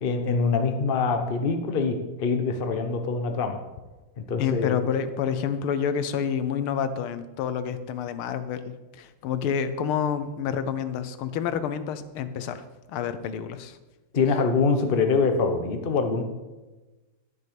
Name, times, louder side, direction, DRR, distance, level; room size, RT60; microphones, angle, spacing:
voice 1, 0.0-3.6 4.3-4.7 14.1-16.2, left 4 dB, 35° left, 6 dB, 0.9 m, -24 dB
voice 2, 4.4-13.8, left 7 dB, 85° left, 12 dB, 1.7 m, -28 dB
11.0 x 10.5 x 5.2 m, 1.1 s
omnidirectional pair, 2.3 m